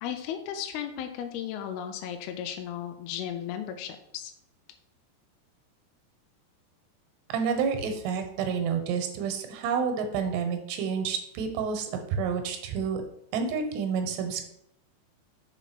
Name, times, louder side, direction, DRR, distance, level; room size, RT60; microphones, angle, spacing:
voice 1, 0.0-4.3, left 9 dB, 80° left, 6 dB, 2.4 m, -35 dB
voice 2, 7.3-13.0 13.3-14.4, right 6 dB, 85° right, 6 dB, 3.1 m, -29 dB
6.3 x 5.0 x 5.8 m, 0.78 s
omnidirectional pair, 4.8 m